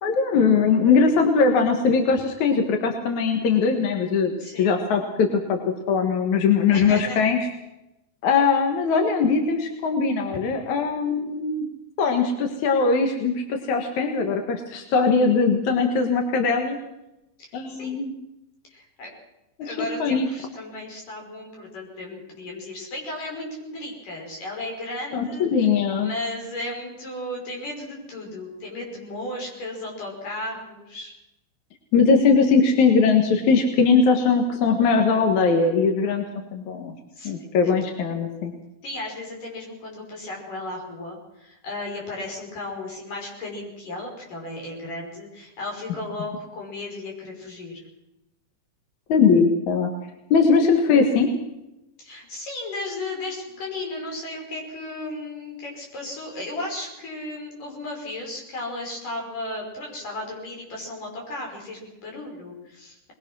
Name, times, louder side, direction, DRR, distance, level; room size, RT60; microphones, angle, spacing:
voice 1, 0.0-4.3 4.6-5.6 5.9-7.4 8.2-11.7 12.0-16.8 17.5-18.1 19.6-19.7 20.0-20.3 25.1-26.1 31.9-36.2 36.5-36.9 37.2-38.5 49.1-49.9 50.3-51.3, left 5 dB, 65° left, 4 dB, 2.9 m, -20 dB
voice 2, 4.4-4.8 6.7-7.2 17.7-17.9 18.7-19.1 19.6-25.5 25.9-31.1 37.2-37.3 38.8-47.8 52.0-63.1, left 2 dB, 85° left, 0 dB, 7.2 m, -35 dB
21.5 x 21.0 x 6.3 m, 0.92 s
omnidirectional pair, 3.6 m